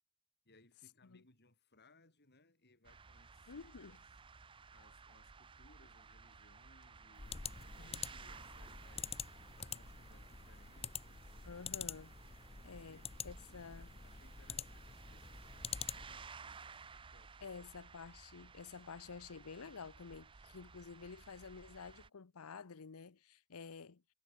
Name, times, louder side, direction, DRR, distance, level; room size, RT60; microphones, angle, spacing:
voice 1, 0.4-4.0 4.7-9.2 9.5-11.4 12.7-13.2 13.5-13.6 14.0-17.6, left 2 dB, 50° left, 7.4 m, -68 dB
JM Recoletos (coches), 2.8-22.1, right 5 dB, 25° right, 0.5 m, -57 dB
voice 2, 3.5-4.0 7.8-8.0 11.4-12.1 12.6-13.9 17.4-24.0, left 5 dB, 75° left, 0.7 m, -51 dB
sound 1, 7.2-16.3, left 7 dB, 30° left, 0.8 m, -47 dB
head